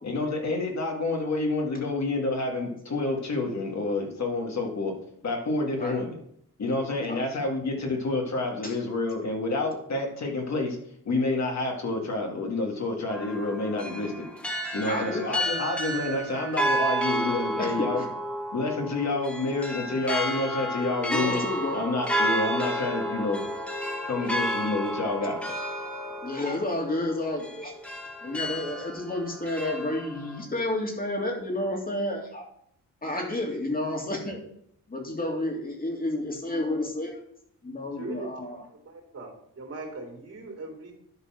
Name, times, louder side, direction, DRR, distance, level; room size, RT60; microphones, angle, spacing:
voice 1, 0.0-4.9 5.2-6.2 6.6-10.8 11.1-14.3 14.7-18.0 18.5-21.4 21.7-23.4 24.1-25.4, left 2 dB, 50° left, 1 dB, 2.2 m, -28 dB
voice 2, 0.8-1.2 5.7-6.0 7.0-7.2 8.6-8.7 14.9-15.3 17.6-18.1 21.1-21.8 24.2-24.3 25.2-25.3 26.2-27.7 28.2-32.5 33.0-34.4 34.9-37.2 37.6-38.7, left 1 dB, 25° left, 1 dB, 2.6 m, -31 dB
sound 1, 13.1-30.4, equal, 5° left, 2.1 m, -31 dB
voice 3, 38.0-38.3 38.9-39.3 39.5-40.9, right 3 dB, 45° right, 0 dB, 3.5 m, -39 dB
11.5 x 4.1 x 5.8 m, 0.69 s
cardioid pair, 95°, 35 cm